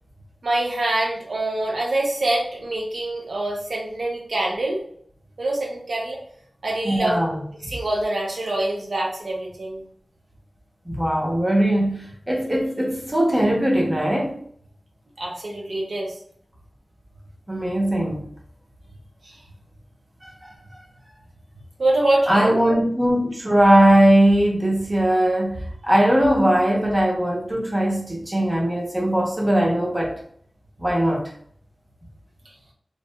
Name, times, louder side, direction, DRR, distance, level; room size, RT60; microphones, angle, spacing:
voice 1, 0.4-4.8 5.4-6.2 6.6-7.2 7.7-9.8 15.2-16.1 19.2-19.3 21.8-22.6, right 2 dB, 85° right, -2 dB, 0.6 m, -25 dB
voice 2, 6.8-7.4 10.9-14.3 17.5-18.3 20.2-20.5 22.3-30.1 30.8-31.2, right 1 dB, 20° right, -2 dB, 0.8 m, -20 dB
3.0 x 2.7 x 2.2 m, 0.62 s
wide cardioid pair, 80°, 0 cm